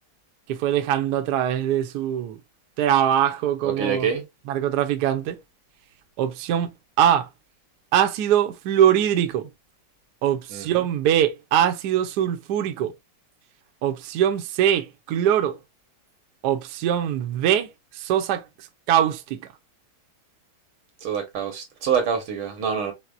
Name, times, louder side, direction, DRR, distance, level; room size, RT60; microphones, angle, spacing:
voice 1, 0.5-2.4 2.8-4.1 4.5-5.4 6.2-6.7 7.0-7.3 7.9-9.5 10.2-12.9 13.8-15.6 16.4-17.7 17.9-18.4 18.9-19.4, right 10 dB, 65° right, 1.0 m, -22 dB
voice 2, 3.6-4.2 10.5-10.9 21.0-22.9, right 7 dB, 85° right, 2.0 m, -26 dB
5.7 x 2.1 x 2.5 m
omnidirectional pair, 2.3 m